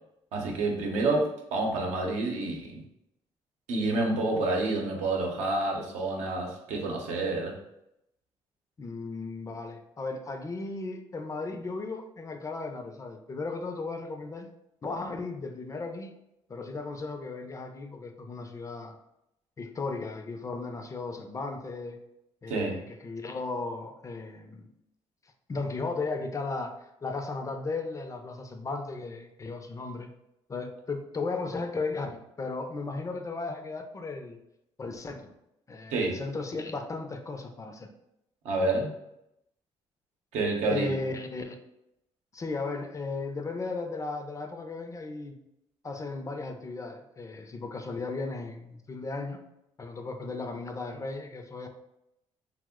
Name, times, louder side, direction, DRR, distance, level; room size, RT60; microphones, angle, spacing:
voice 1, 0.3-2.8 3.7-7.5 22.5-22.8 35.9-36.2 38.4-38.9 40.3-40.9, right 2 dB, 85° right, 0 dB, 0.7 m, -28 dB
voice 2, 8.8-14.5 14.8-16.1 16.5-19.0 19.6-22.0 22.4-24.7 25.5-30.1 30.5-34.4 34.8-35.2 35.7-37.9 40.7-41.6 42.3-45.4 45.8-49.4 49.8-51.7, left 3 dB, 30° left, 5 dB, 0.4 m, -35 dB
2.8 x 2.1 x 3.5 m, 0.84 s
cardioid pair, 85°, 12 cm